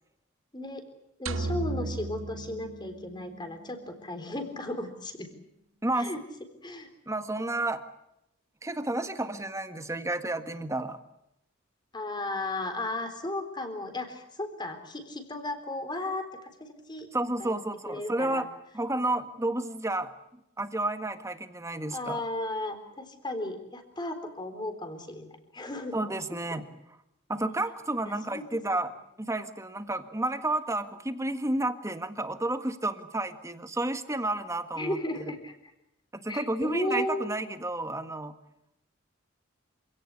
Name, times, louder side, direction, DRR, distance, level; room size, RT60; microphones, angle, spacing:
voice 1, 1.2-5.3 5.9-6.2 6.6-6.9 11.9-17.1 17.4-17.6 17.9-18.4 21.9-26.0 28.0-28.4 28.7-28.8 34.8-35.5 36.3-37.3, left 1 dB, 20° left, 8 dB, 3.8 m, -35 dB
sound 1, 1.3-3.5, right 3 dB, 75° right, 1.1 m, -34 dB
voice 2, 5.8-6.1 7.1-7.8 8.6-11.0 17.1-18.5 18.7-20.1 20.6-22.2 25.9-26.6 27.3-35.0 36.1-38.3, right 2 dB, 15° right, 9 dB, 1.6 m, -31 dB
27.0 x 17.0 x 9.8 m, 0.81 s
head